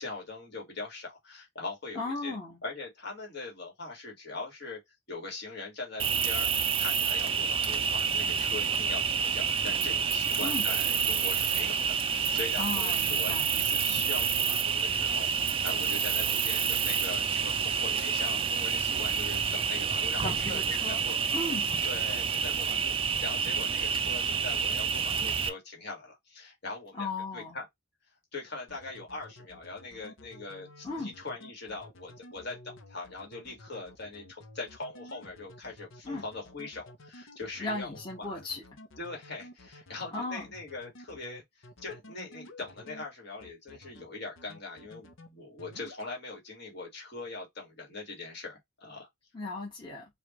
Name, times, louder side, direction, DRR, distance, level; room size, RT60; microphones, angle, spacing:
voice 1, 0.0-2.4 2.6-4.8 5.1-6.5 6.8-21.2 21.8-27.7 28.3-38.4 39.0-49.1, left 3 dB, 55° left, 1.8 m, -41 dB
voice 2, 1.9-2.6 10.4-10.7 12.5-13.5 20.2-21.0 21.3-21.7 26.9-27.6 30.8-31.1 36.0-36.2 37.6-38.6 40.1-40.4 49.3-50.0, left 2 dB, 25° left, 1.3 m, -36 dB
Cricket, 6.0-25.5, right 6 dB, 25° right, 0.4 m, -28 dB
sound 1, 28.7-43.0 43.4-44.0 44.4-45.3 45.6-46.1, left 1 dB, 70° left, 0.8 m, -51 dB
4.8 x 2.4 x 3.0 m
head